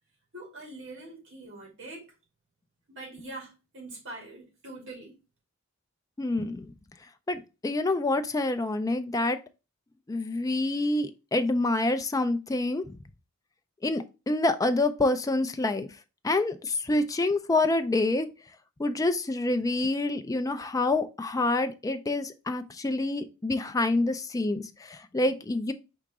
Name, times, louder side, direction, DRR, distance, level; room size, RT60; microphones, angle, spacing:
voice 1, 0.3-2.1 2.9-5.2, right 2 dB, 60° right, 2.5 m, -43 dB
voice 2, 6.2-6.7 7.3-9.4 10.1-13.0 13.8-15.9 16.2-18.3 18.8-25.7, left 2 dB, 15° left, 0.4 m, -27 dB
4.7 x 2.9 x 3.5 m
head